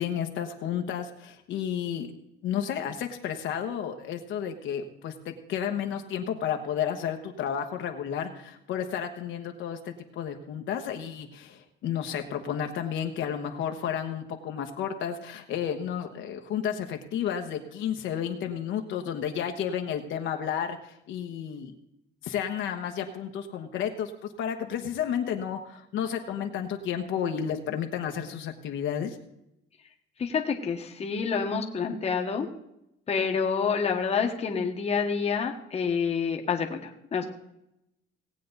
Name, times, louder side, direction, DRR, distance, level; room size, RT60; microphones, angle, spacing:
voice 1, 0.0-2.1 2.4-21.7 22.2-24.1 24.4-29.2, left 8 dB, 70° left, 4 dB, 1.2 m, -32 dB
voice 2, 30.2-32.5 33.1-37.3, left 6 dB, 30° left, 2 dB, 1.3 m, -28 dB
18.0 x 8.5 x 4.0 m, 0.83 s
cardioid pair, 145°, 21 cm